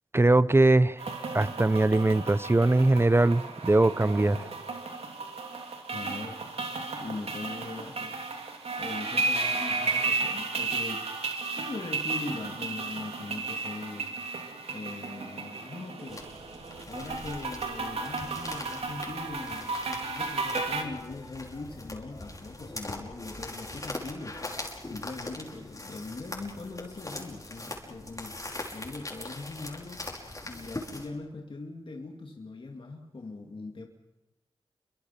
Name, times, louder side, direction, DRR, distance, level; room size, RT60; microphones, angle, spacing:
voice 1, 0.1-1.0 1.3-4.4, right 2 dB, 25° right, 17 dB, 0.9 m, -21 dB
sound 1, 1.0-20.8, right 3 dB, 85° right, 3.1 m, -34 dB
voice 2, 5.9-6.4 7.0-8.2 8.8-11.1 11.5-14.1 14.7-16.3 16.8-24.4 24.8-28.4 28.7-30.0 30.4-33.9, left 3 dB, 55° left, 2 dB, 2.4 m, -41 dB
sound 2, 16.1-31.1, left 2 dB, 35° left, 5.7 m, -41 dB
28.5 x 24.0 x 5.9 m, 1.0 s
cardioid pair, 45°, 10 cm